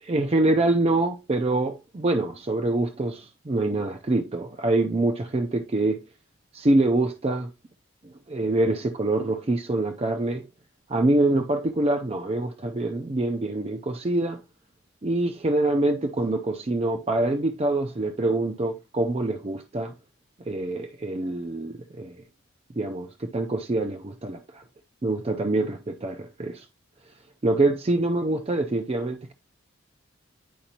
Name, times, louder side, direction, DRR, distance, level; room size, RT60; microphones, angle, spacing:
voice 1, 0.0-6.0 6.5-7.5 8.3-10.5 10.9-14.4 15.0-19.9 20.4-22.2 22.8-24.6 25.0-26.7 27.4-29.3, right 2 dB, 30° right, 0.5 m, -25 dB
10.0 x 5.0 x 2.8 m
head